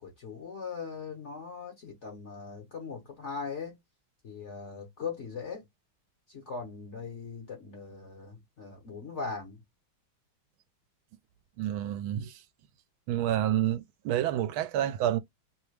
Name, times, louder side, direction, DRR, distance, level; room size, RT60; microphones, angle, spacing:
voice 1, 0.0-3.8 4.2-5.6 6.3-9.6, left 5 dB, 45° left, 1.0 m, -40 dB
voice 2, 11.6-12.3 13.1-15.2, right 11 dB, 80° right, 1.4 m, -28 dB
3.3 x 2.9 x 3.2 m
omnidirectional pair, 2.3 m